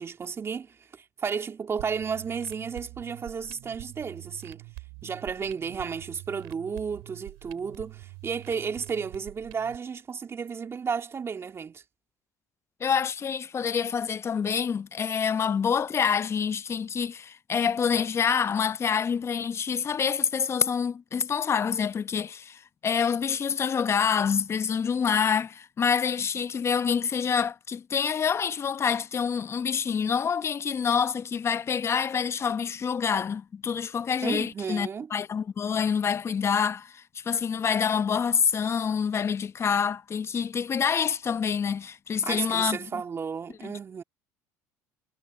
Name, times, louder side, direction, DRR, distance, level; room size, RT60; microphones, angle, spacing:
voice 1, 0.0-4.6 5.0-11.8 34.2-35.1 42.2-44.0, right 6 dB, 35° right, 2.2 m, -33 dB
sound 1, 1.8-9.8, right 32 dB, 75° right, 7.7 m, -45 dB
voice 2, 12.8-42.8 43.6-43.7, left 7 dB, 35° left, 0.9 m, -27 dB
hypercardioid pair, 80°, 8 cm